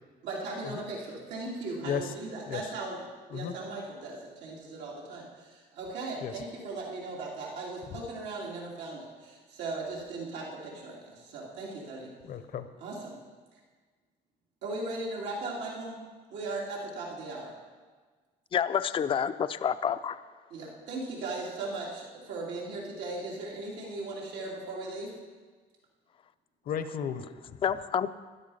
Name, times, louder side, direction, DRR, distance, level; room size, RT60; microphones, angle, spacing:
voice 1, 0.2-3.0 3.3-12.1 12.8-13.2 14.6-16.0 16.3-17.5 20.5-25.1, right 2 dB, 90° right, -3 dB, 2.9 m, -38 dB
voice 2, 1.8-2.1 2.5-2.7 3.3-3.5 6.2-6.3 7.9-8.0 12.2-12.7 26.7-27.6, left 8 dB, 60° left, 10 dB, 0.8 m, -34 dB
voice 3, 18.5-20.2 27.6-28.1, left 8 dB, 30° left, 12 dB, 0.4 m, -28 dB
12.5 x 11.5 x 5.6 m, 1.5 s
cardioid pair, 110°, 17 cm